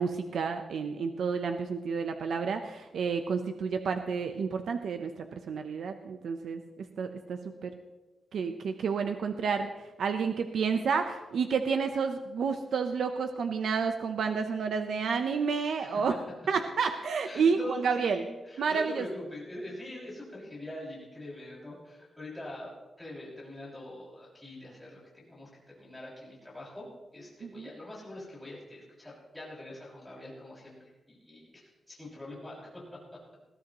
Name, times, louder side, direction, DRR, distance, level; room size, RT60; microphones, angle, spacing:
voice 1, 0.0-7.7 8.3-9.7 10.0-16.1 16.5-18.2 18.6-19.0 27.4-27.7, right 5 dB, 70° right, 6 dB, 0.8 m, -30 dB
voice 2, 15.8-16.2 17.2-26.9 27.1-33.2, left 1 dB, 5° left, -6 dB, 6.1 m, -44 dB
20.5 x 15.0 x 3.1 m, 1.1 s
wide cardioid pair, 175°, 0 cm